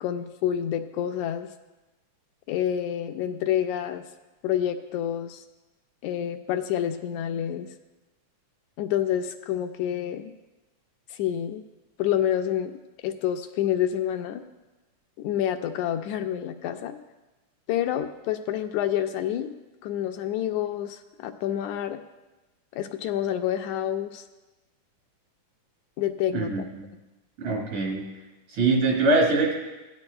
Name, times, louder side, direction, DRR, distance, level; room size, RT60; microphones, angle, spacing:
voice 1, 0.0-1.5 2.5-4.1 4.4-5.4 6.0-7.7 8.8-10.3 11.1-11.6 12.0-14.4 15.2-17.0 17.7-19.5 19.8-22.0 22.7-24.2 26.0-26.7, left 10 dB, 80° left, 7 dB, 1.8 m, -28 dB
voice 2, 26.3-26.9 27.4-28.1 28.5-29.5, right 3 dB, 85° right, -2 dB, 4.2 m, -23 dB
17.0 x 10.5 x 2.3 m, 1.1 s
omnidirectional pair, 3.5 m